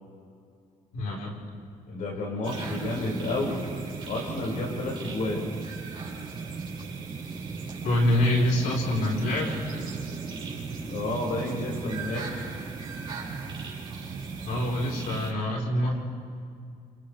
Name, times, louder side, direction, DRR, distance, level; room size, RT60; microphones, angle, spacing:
voice 1, 0.9-1.3 7.8-9.6 14.4-16.0, left 1 dB, 90° left, -2 dB, 4.3 m, -25 dB
voice 2, 1.9-3.6 4.1-5.5 10.9-12.3, left 2 dB, 70° left, -2 dB, 6.0 m, -31 dB
sound 1, 2.4-15.3, right 4 dB, 40° right, 4.2 m, -36 dB
28.0 x 27.5 x 3.4 m, 2.3 s
cardioid pair, 135°, 14 cm